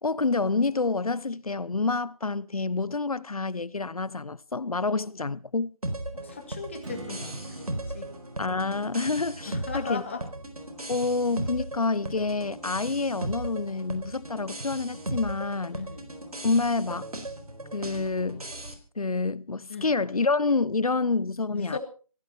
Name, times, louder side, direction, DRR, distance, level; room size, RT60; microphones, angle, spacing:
voice 1, 0.0-5.7 8.4-10.0 10.9-15.8 16.4-17.1 17.7-18.4 19.0-21.8, left 3 dB, 75° left, 0.9 m, -28 dB
sound 1, 5.8-18.7, right 1 dB, 90° right, 4.3 m, -37 dB
voice 2, 6.1-8.1 9.5-10.3 15.7-16.1 19.7-19.9 21.5-21.8, left 5 dB, 20° left, 2.1 m, -37 dB
Strum, 6.8-12.0, right 2 dB, 55° right, 5.6 m, -47 dB
17.0 x 16.0 x 4.4 m
figure-of-eight pair, 170°, 19 cm